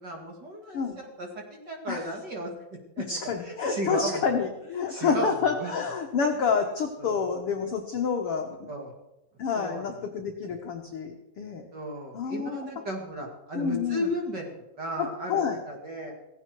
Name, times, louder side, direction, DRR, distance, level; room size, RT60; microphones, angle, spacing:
voice 1, 0.0-2.5 3.0-3.1 3.5-4.3 4.9-5.3 5.6-5.7 7.0-7.2 8.7-8.9 9.6-9.8 11.7-14.5 14.8-16.1, right 1 dB, 35° right, 1 dB, 2.3 m, -34 dB
voice 2, 3.0-8.7 9.4-11.7 12.1-12.6 13.5-14.1 15.0-15.6, left 6 dB, 70° left, 3 dB, 1.3 m, -28 dB
17.5 x 15.5 x 4.6 m, 0.90 s
omnidirectional pair, 4.3 m